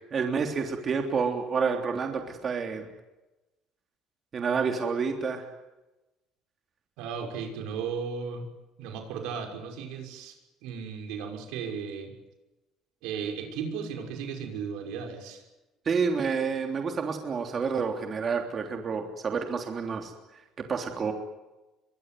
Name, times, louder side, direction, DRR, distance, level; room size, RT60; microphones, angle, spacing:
voice 1, 0.1-2.9 4.3-5.4 15.8-20.1 20.7-21.1, right 5 dB, 35° right, 4 dB, 3.2 m, -29 dB
voice 2, 7.0-8.5 8.8-12.1 13.0-15.4, right 6 dB, 85° right, 3 dB, 5.9 m, -35 dB
24.0 x 21.5 x 9.5 m, 1.0 s
cardioid pair, 115°, 0 cm